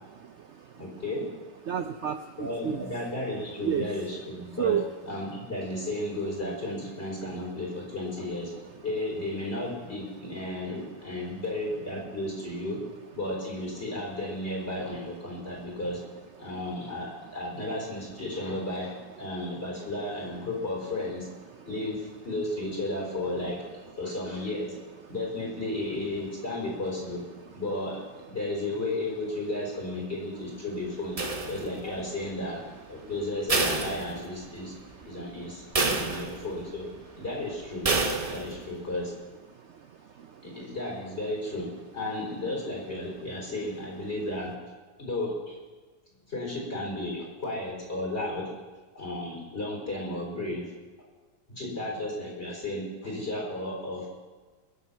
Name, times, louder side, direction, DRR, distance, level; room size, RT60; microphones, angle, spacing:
voice 1, 0.2-0.7 1.7-2.8 3.6-3.9 4.6-4.8 21.5-21.6 34.8-35.1 39.7-39.8 40.2-40.6, right 9 dB, 75° right, 8 dB, 0.6 m, -32 dB
voice 2, 0.8-1.3 2.4-4.8 5.0-8.5 8.8-12.8 13.1-16.0 16.4-21.3 21.7-23.7 24.0-24.7 25.1-27.2 27.5-31.2 31.5-32.6 32.9-34.7 35.0-36.9 37.2-37.9 38.3-39.1 40.4-44.5 45.0-45.6 46.3-48.5 48.9-50.7 51.5-54.1, left 1 dB, 35° left, -2 dB, 4.6 m, -33 dB
sound 1, 31.2-32.0 33.5-34.6 35.0-35.1 35.8-36.6 37.8-38.6, right 3 dB, 30° right, 0.8 m, -28 dB
22.0 x 7.6 x 5.7 m, 1.3 s
omnidirectional pair, 1.9 m